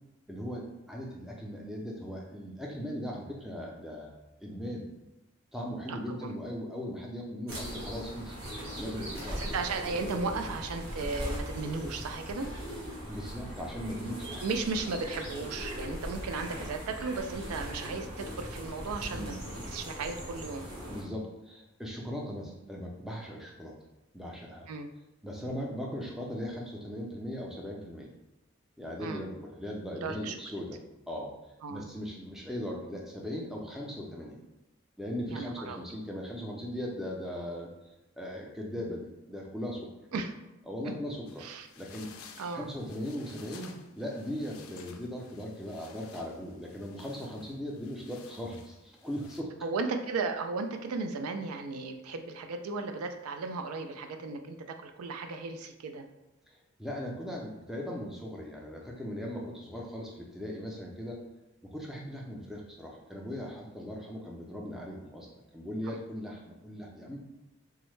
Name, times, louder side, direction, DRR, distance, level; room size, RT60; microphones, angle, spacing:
voice 1, 0.3-4.9 5.5-8.4 8.7-9.4 13.1-14.4 19.1-19.3 20.9-23.7 24.1-24.7 25.2-28.1 28.8-30.8 31.1-31.3 31.7-34.4 35.0-37.7 38.2-39.8 40.7-41.5 41.8-42.1 42.5-49.5 56.5-61.2 61.6-65.3 65.5-67.2, equal, ahead, -2 dB, 0.4 m, -38 dB
voice 2, 5.9-6.3 9.4-12.5 14.4-19.3 19.7-20.7 24.7-24.9 29.0-29.2 30.0-30.4 31.6-31.8 35.2-35.8 40.1-40.3 41.4-41.7 42.4-42.7 49.6-56.0 65.8-66.0, right 4 dB, 90° right, 6 dB, 0.4 m, -35 dB
sound 1, 7.5-21.0, equal, 70° right, 1.1 m, -39 dB
sound 2, 41.3-49.4, left 6 dB, 70° left, 0.3 m, -54 dB
3.5 x 2.1 x 3.1 m, 0.96 s
head